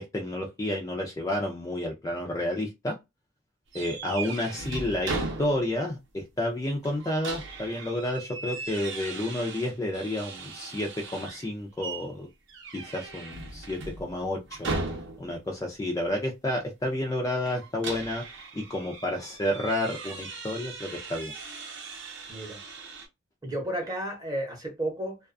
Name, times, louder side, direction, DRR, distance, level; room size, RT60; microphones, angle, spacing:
voice 1, 0.0-3.0 3.7-12.3 12.7-14.7 15.2-18.2 18.5-21.3, left 1 dB, 15° left, 0.3 m, -30 dB
sound 1, 3.7-5.9 6.2-6.3 6.8-11.5 11.8-12.1 12.5-15.4 17.4-23.1, right 3 dB, 60° right, 0.7 m, -38 dB
voice 2, 22.3-22.6 23.4-25.2, right 1 dB, 20° right, 0.7 m, -32 dB
2.3 x 2.3 x 2.4 m
head